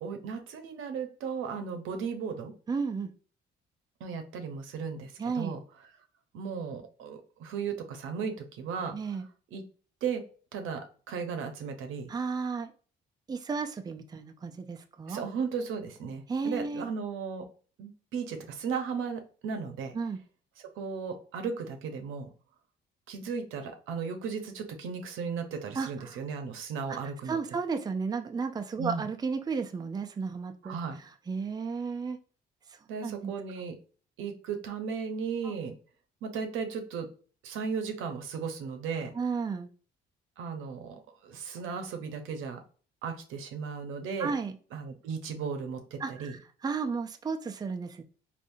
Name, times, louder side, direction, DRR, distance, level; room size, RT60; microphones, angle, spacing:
voice 1, 0.0-2.5 4.0-5.6 6.3-9.2 9.5-9.6 10.0-12.1 15.1-17.5 17.8-20.0 20.8-22.3 23.1-27.4 28.8-29.0 30.6-31.0 32.9-33.8 34.2-35.7 36.2-37.1 37.4-39.1 40.4-42.6 43.0-44.3 44.7-46.3, right 6 dB, 85° right, 6 dB, 0.7 m, -36 dB
voice 2, 2.7-3.1 5.2-5.6 8.9-9.3 12.1-12.7 13.3-15.2 16.3-16.8 19.9-20.2 25.8-26.2 26.9-27.0 27.3-30.8 31.3-32.2 33.0-33.3 35.4-35.5 39.1-39.7 44.2-44.6 46.0-48.0, right 5 dB, 20° right, 6 dB, 0.4 m, -33 dB
3.6 x 2.5 x 2.6 m, 0.39 s
cardioid pair, 90°, 20 cm